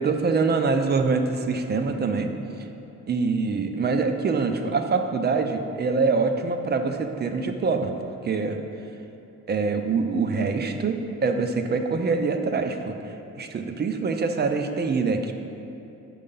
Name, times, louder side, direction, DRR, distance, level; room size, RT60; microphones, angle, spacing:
voice 1, 0.0-2.3 3.1-7.9 8.2-8.6 9.5-13.0 13.4-15.3, right 4 dB, 35° right, 6 dB, 0.5 m, -24 dB
5.4 x 4.7 x 5.5 m, 2.9 s
cardioid pair, 90°, 30 cm